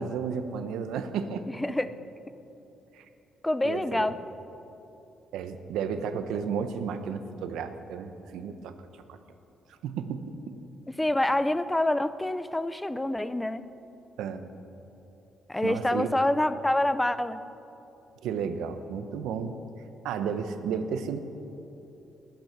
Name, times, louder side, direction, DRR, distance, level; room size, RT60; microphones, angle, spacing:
voice 1, 0.0-1.4 2.9-3.0 3.6-4.1 5.3-8.7 9.1-9.2 9.8-10.6 14.2-14.4 15.6-16.1 18.2-19.6 20.0-21.2, right 6 dB, 85° right, 9 dB, 0.9 m, -33 dB
voice 2, 1.5-1.9 3.4-4.2 11.0-13.6 15.5-17.4, left 1 dB, 10° left, 13 dB, 0.6 m, -26 dB
20.5 x 9.5 x 6.0 m, 3.0 s
cardioid pair, 90°, 0 cm